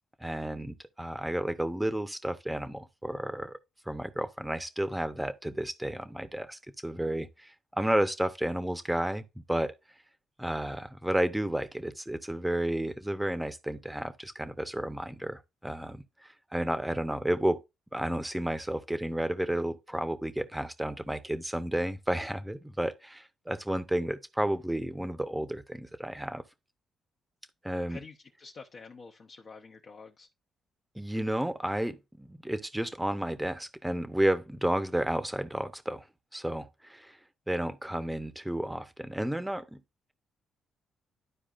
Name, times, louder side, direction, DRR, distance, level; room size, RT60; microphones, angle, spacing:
voice 1, 0.2-3.6 3.9-9.2 9.5-9.7 10.4-16.0 16.5-17.6 17.9-26.4 27.6-28.0 31.0-36.0 36.3-37.2 37.5-39.8, right 1 dB, 5° right, 0.8 m, -32 dB
voice 2, 27.9-30.3, left 4 dB, 45° left, 0.9 m, -48 dB
12.0 x 4.7 x 2.5 m
cardioid pair, 90°, 0 cm